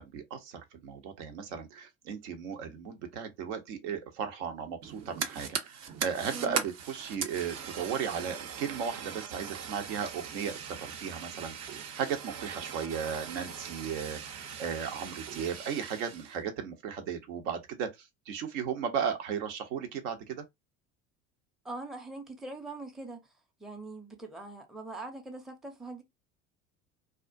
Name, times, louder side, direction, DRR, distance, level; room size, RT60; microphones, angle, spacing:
voice 1, 0.0-20.4, right 7 dB, 70° right, 0.8 m, -36 dB
Fire, 4.8-16.4, right 7 dB, 45° right, 0.6 m, -40 dB
voice 2, 6.3-6.6 21.6-23.3 23.6-26.0, right 3 dB, ahead, 0.5 m, -42 dB
2.4 x 2.1 x 2.5 m
hypercardioid pair, 75°, 39 cm